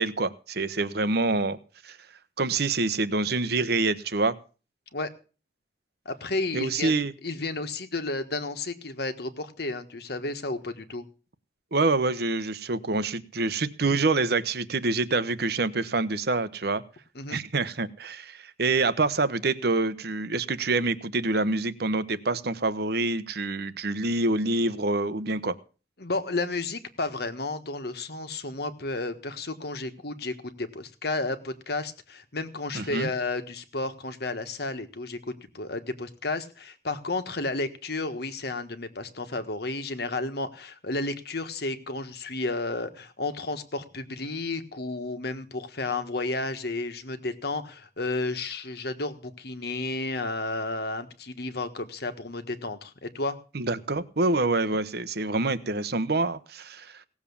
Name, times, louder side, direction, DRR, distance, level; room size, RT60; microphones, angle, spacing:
voice 1, 0.0-1.6 1.8-2.0 2.4-4.3 6.5-7.1 11.7-16.8 17.3-25.5 32.7-33.1 53.5-57.0, right 3 dB, 60° right, 14 dB, 1.0 m, -26 dB
voice 2, 6.0-7.0 7.2-11.1 17.1-17.4 26.0-53.4, left 2 dB, 60° left, 9 dB, 1.5 m, -32 dB
17.5 x 7.3 x 7.1 m, 0.36 s
head